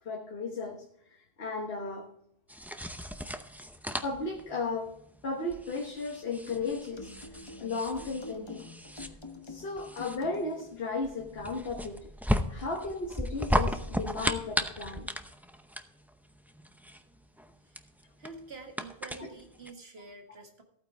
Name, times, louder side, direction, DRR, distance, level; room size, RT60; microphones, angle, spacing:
voice 1, 0.0-2.1 4.0-5.0 5.2-8.7 9.4-12.1 12.5-15.1 19.2-19.3, left 3 dB, 75° left, 1 dB, 1.5 m, -35 dB
sound 1, 2.5-19.7, equal, ahead, 0.5 m, -35 dB
sound 2, 6.5-10.7, left 2 dB, 30° left, 1.1 m, -47 dB
voice 2, 18.2-20.6, right 3 dB, 75° right, 3 dB, 2.0 m, -47 dB
15.0 x 8.9 x 3.4 m, 0.76 s
omnidirectional pair, 1.0 m